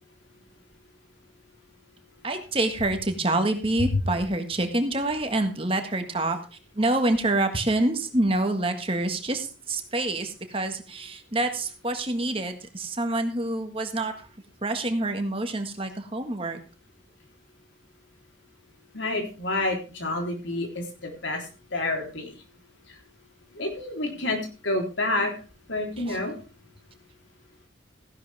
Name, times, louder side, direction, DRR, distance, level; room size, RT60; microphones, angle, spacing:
voice 1, 2.2-6.4 6.7-14.3 14.6-16.6 26.1-26.2, right 2 dB, 30° right, 6 dB, 1.6 m, -27 dB
voice 2, 18.9-21.4 21.7-22.3 23.6-24.4 24.6-25.3 25.7-26.4, left 2 dB, 80° left, 2 dB, 3.6 m, -28 dB
15.0 x 11.5 x 3.5 m, 0.34 s
head